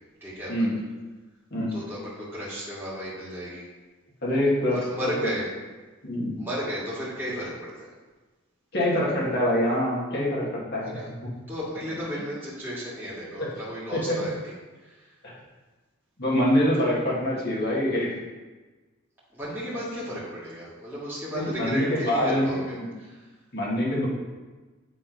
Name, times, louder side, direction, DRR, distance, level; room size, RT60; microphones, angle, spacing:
voice 1, 0.2-0.5 1.7-3.6 4.7-5.5 6.4-7.9 10.8-11.1 11.5-14.5 14.8-15.1 16.8-16.9 19.3-23.3, equal, 10° right, -10 dB, 2.1 m, -34 dB
voice 2, 4.2-4.8 5.0-5.3 6.0-6.3 8.7-11.3 13.4-13.5 14.1-14.2 15.2-15.3 16.2-18.1 21.3-22.9 23.5-24.0, left 1 dB, 50° left, -5 dB, 2.1 m, -25 dB
8.4 x 3.8 x 5.2 m, 1.3 s
head